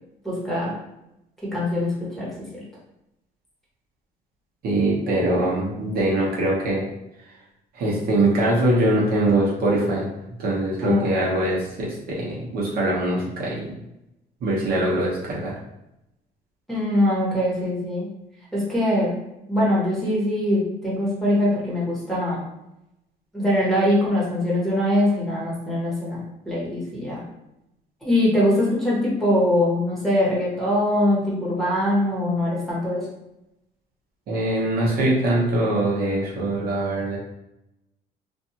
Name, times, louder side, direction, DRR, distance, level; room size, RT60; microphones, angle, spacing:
voice 1, 0.2-0.7 1.4-2.5 10.8-11.2 16.7-18.1 18.5-19.1 19.5-22.4 23.3-27.2 28.0-33.0, left 1 dB, ahead, -8 dB, 1.3 m, -22 dB
voice 2, 4.6-6.8 7.7-10.1 10.4-13.7 14.4-15.5 34.3-37.2, right 1 dB, 65° right, -5 dB, 1.0 m, -22 dB
2.5 x 2.5 x 2.8 m, 0.88 s
cardioid pair, 110°, 17 cm